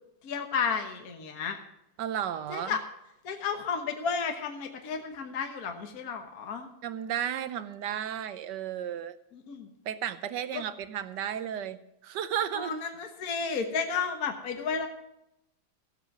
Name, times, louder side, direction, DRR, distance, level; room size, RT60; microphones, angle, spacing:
voice 1, 0.2-1.6 2.5-2.8 3.2-6.7 9.3-9.7 10.5-10.6 12.5-14.9, left 5 dB, 50° left, 4 dB, 1.5 m, -32 dB
voice 2, 2.0-2.8 6.8-9.2 9.9-12.7, right 9 dB, 65° right, 13 dB, 1.2 m, -33 dB
15.0 x 8.5 x 6.1 m, 0.83 s
omnidirectional pair, 2.3 m